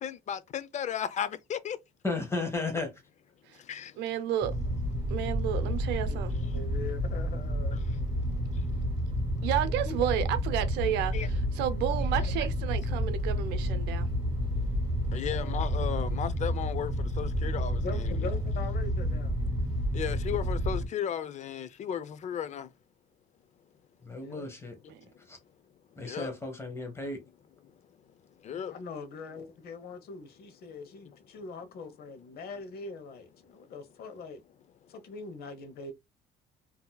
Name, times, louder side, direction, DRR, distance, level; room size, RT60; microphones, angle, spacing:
voice 1, 0.0-1.8 3.7-3.9 9.9-10.0 11.1-11.3 12.1-12.3 15.1-18.1 19.9-22.7 26.1-26.3 28.4-28.7, left 9 dB, 45° left, 0.5 m, -35 dB
voice 2, 2.0-2.9 24.0-24.8 25.3-25.4 26.0-27.2, left 3 dB, 15° left, 1.1 m, -34 dB
voice 3, 4.0-4.6 5.1-6.3 9.4-11.1 11.5-14.1 24.9-25.0, right 11 dB, 90° right, 0.6 m, -31 dB
sound 1, 4.4-20.9, equal, 30° right, 2.1 m, -30 dB
voice 4, 6.1-7.8 15.3-15.6 17.8-19.3 24.2-24.5 28.7-34.4 34.9-35.9, left 3 dB, 65° left, 0.9 m, -42 dB
3.8 x 2.8 x 2.2 m
cardioid pair, 110°, 17 cm